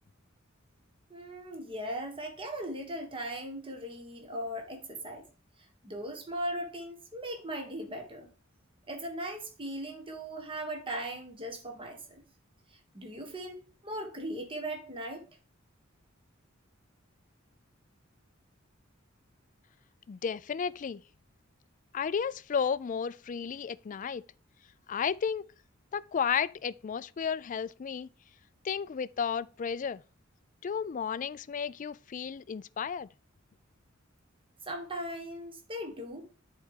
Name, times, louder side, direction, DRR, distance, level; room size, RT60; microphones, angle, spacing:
voice 1, 1.1-5.2 5.8-8.3 8.9-12.2 12.9-13.6 13.8-15.2 34.7-36.3, right 1 dB, 25° right, 1.6 m, -38 dB
voice 2, 20.1-21.0 21.9-24.2 24.9-25.5 25.9-28.1 28.6-30.0 30.6-33.1, left 7 dB, 40° left, 0.3 m, -33 dB
10.0 x 4.7 x 3.7 m
head